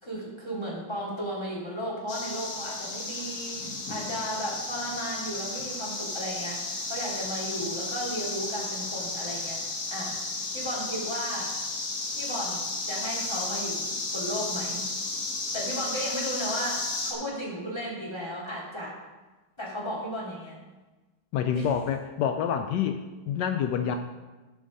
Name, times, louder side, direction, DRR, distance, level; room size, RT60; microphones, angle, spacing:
voice 1, 0.0-9.6 9.9-11.6 12.1-14.9 15.5-19.0 19.6-20.6 21.5-21.7, equal, 15° left, -5 dB, 2.9 m, -35 dB
sound 1, 2.1-17.1, left 3 dB, 65° left, 2.1 m, -33 dB
voice 2, 21.3-24.0, left 8 dB, 80° left, 7 dB, 1.2 m, -27 dB
13.0 x 5.0 x 5.3 m, 1.2 s
omnidirectional pair, 1.9 m